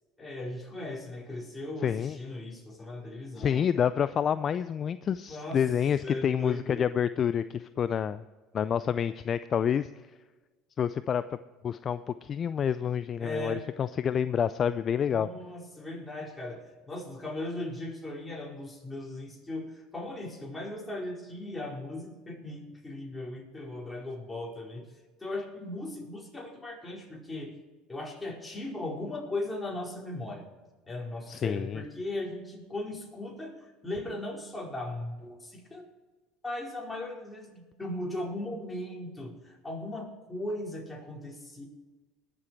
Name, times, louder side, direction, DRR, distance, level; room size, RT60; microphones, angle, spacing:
voice 1, 0.2-3.6 5.3-5.6 6.0-6.8 13.2-13.7 15.0-24.8 25.2-27.6 27.9-30.5 30.9-35.9 36.4-41.7, left 1 dB, 15° left, -2 dB, 4.7 m, -38 dB
voice 2, 1.8-2.2 3.4-8.2 8.5-9.9 10.8-11.2 11.6-15.3 31.3-31.8, left 8 dB, 40° left, 14 dB, 0.4 m, -28 dB
20.5 x 7.7 x 4.6 m, 1.3 s
hypercardioid pair, 75°, 0 cm